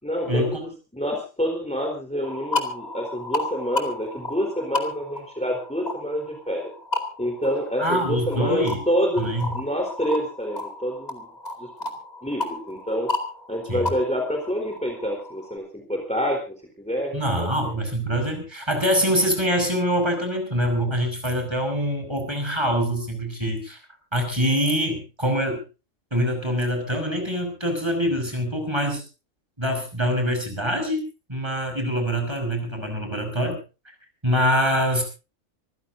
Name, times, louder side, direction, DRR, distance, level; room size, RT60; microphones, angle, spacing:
voice 1, 0.0-6.7 7.2-11.3 11.6-11.7 12.2-13.1 13.5-16.4 16.8-17.7, equal, 5° left, 2 dB, 4.0 m, -27 dB
sound 1, 2.2-15.6, left 2 dB, 30° left, 2.6 m, -33 dB
voice 2, 7.8-8.8 9.2-9.5 13.7-13.9 17.1-23.8 24.1-25.6 26.1-29.0 29.6-31.0 31.3-33.6 34.2-35.0, equal, 20° right, 4 dB, 6.0 m, -24 dB
26.0 x 15.5 x 2.7 m, 0.33 s
omnidirectional pair, 1.3 m